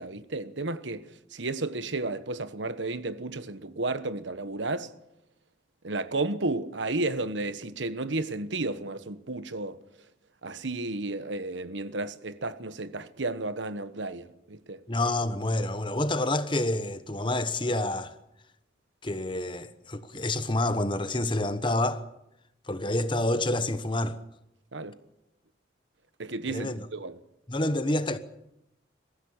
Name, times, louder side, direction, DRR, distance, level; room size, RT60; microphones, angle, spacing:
voice 1, 0.0-4.9 5.8-9.8 10.4-14.8 24.7-25.0 26.2-27.2, right 2 dB, 75° right, 1.2 m, -33 dB
voice 2, 14.9-18.1 19.0-22.0 22.7-24.2 26.5-26.9 27.5-28.2, left 1 dB, 25° left, 1.1 m, -28 dB
23.0 x 15.0 x 8.7 m
head